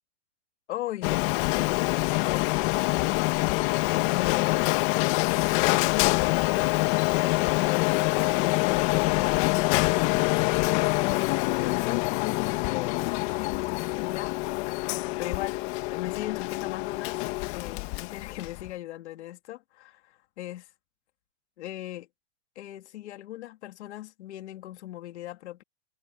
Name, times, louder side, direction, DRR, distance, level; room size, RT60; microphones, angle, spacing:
voice 1, 0.7-3.2 4.1-4.7 5.7-6.7 7.1-7.9 8.3-14.3 15.2-15.6 15.9-17.2 17.5-20.0 20.4-20.6 21.6-22.1 22.5-25.6, left 14 dB, 70° left, 3.0 m, -39 dB
Printer, 1.0-18.7, left 23 dB, 45° left, 1.6 m, -25 dB
supercardioid pair, 145°, 35 cm